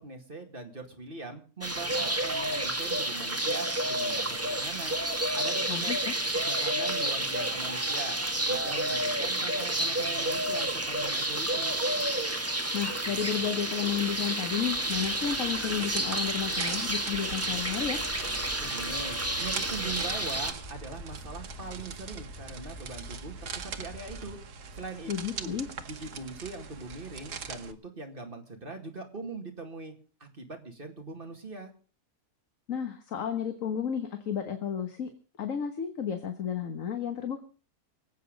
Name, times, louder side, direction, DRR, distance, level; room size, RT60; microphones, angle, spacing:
voice 1, 0.0-5.0 5.4-5.9 6.4-8.2 8.5-11.8 18.6-24.4 24.7-25.6 25.9-29.9 30.2-31.7, right 3 dB, 35° right, 4 dB, 2.3 m, -41 dB
sound 1, 1.6-20.5, right 1 dB, 10° right, 1.2 m, -30 dB
voice 2, 5.7-6.1 12.7-18.0 25.1-25.7 32.7-35.1 35.4-37.4, left 8 dB, 60° left, 6 dB, 1.7 m, -32 dB
sound 2, 14.7-27.7, right 6 dB, 90° right, 1.6 m, -42 dB
sound 3, 17.4-24.4, left 1 dB, 20° left, 1.6 m, -46 dB
25.0 x 8.4 x 5.2 m, 0.38 s
omnidirectional pair, 1.6 m